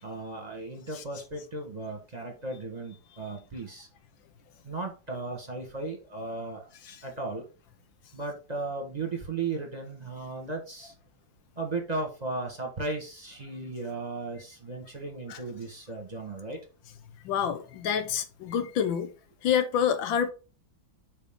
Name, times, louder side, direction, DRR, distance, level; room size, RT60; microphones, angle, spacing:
voice 1, 0.0-3.9 4.6-6.7 7.0-7.4 8.1-10.9 11.5-16.6, right 3 dB, 25° right, 1.6 m, -36 dB
voice 2, 17.2-19.1 19.4-20.3, left 8 dB, 85° left, 1.6 m, -27 dB
6.6 x 5.2 x 3.7 m
omnidirectional pair, 2.1 m